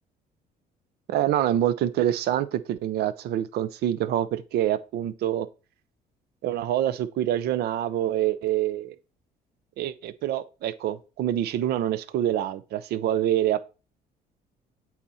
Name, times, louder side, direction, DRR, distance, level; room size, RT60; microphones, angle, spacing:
voice 1, 1.1-5.5 6.4-8.9 9.8-13.6, right 12 dB, 75° right, 0.7 m, -26 dB
8.3 x 4.2 x 4.2 m
cardioid pair, 110°, 17 cm